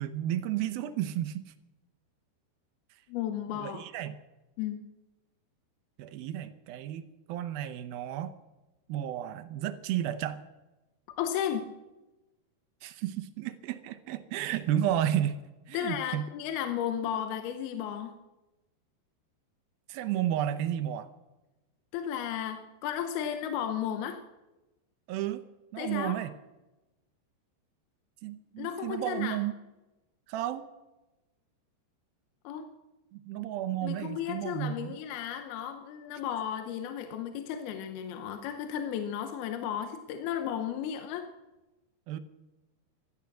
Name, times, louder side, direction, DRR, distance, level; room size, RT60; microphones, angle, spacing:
voice 1, 0.0-1.5 3.5-4.1 6.0-8.3 8.9-10.4 12.8-15.4 15.7-16.3 19.9-21.1 25.1-25.5 25.7-26.3 28.2-29.5 30.3-30.7 33.1-35.0 42.1-42.2, right 11 dB, 75° right, 11 dB, 2.4 m, -32 dB
voice 2, 3.1-3.8 4.6-4.8 11.2-11.7 15.7-18.2 21.9-24.2 25.8-26.2 28.6-29.4 32.4-32.7 33.8-41.3, left 9 dB, 75° left, 8 dB, 2.7 m, -34 dB
15.5 x 13.0 x 6.2 m, 1.0 s
omnidirectional pair, 4.7 m